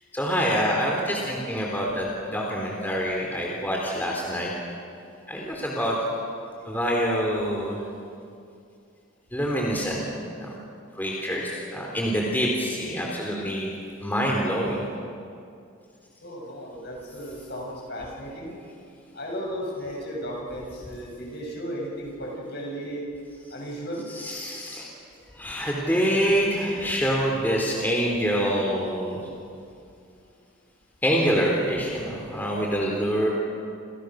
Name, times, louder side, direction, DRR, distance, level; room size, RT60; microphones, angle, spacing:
voice 1, 0.1-4.5 5.3-6.0 6.7-7.8 9.3-10.0 10.4-10.6 11.0-13.7 14.0-14.8 24.1-24.9 25.4-29.2 31.0-33.3, equal, 10° left, -2 dB, 3.8 m, -26 dB
voice 2, 16.2-18.6 19.1-23.0 23.5-24.1, equal, 50° left, -1 dB, 7.7 m, -35 dB
29.5 x 29.0 x 6.6 m, 2.5 s
head